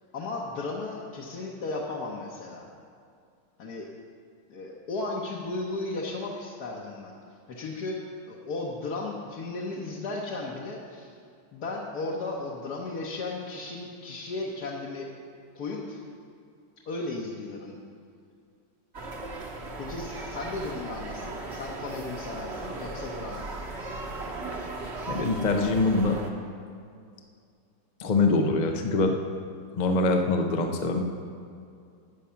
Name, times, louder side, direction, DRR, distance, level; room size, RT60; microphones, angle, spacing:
voice 1, 0.1-2.7 3.6-3.9 4.5-7.2 7.5-11.1 11.5-15.1 15.5-16.0 16.8-17.7 19.8-23.5, left 3 dB, 55° left, -4 dB, 1.4 m, -35 dB
sound 1, 18.9-26.3, right 2 dB, 40° right, 1.1 m, -37 dB
voice 2, 25.1-26.2 28.0-29.2 29.7-31.0, left 3 dB, 75° left, 4 dB, 0.4 m, -24 dB
13.5 x 9.2 x 5.7 m, 2.3 s
omnidirectional pair, 2.4 m